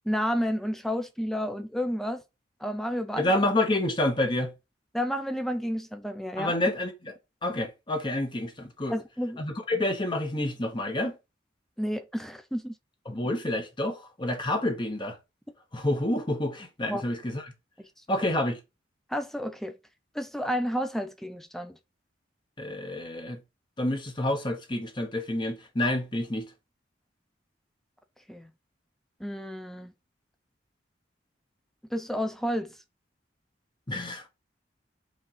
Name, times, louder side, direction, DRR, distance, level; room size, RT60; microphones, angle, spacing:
voice 1, 0.1-2.2 2.6-3.3 4.9-6.6 8.9-9.4 11.8-12.7 16.9-17.0 18.1-18.3 19.1-19.7 20.1-21.8 28.3-28.5 29.2-29.9 31.9-32.7, equal, ahead, 0.5 m, -31 dB
voice 2, 3.2-4.5 6.4-7.1 7.4-9.0 9.4-11.1 13.1-15.2 15.7-17.4 18.1-18.6 22.6-23.4 23.8-26.5 33.9-34.3, left 1 dB, 25° left, 1.0 m, -28 dB
5.2 x 3.9 x 5.6 m
head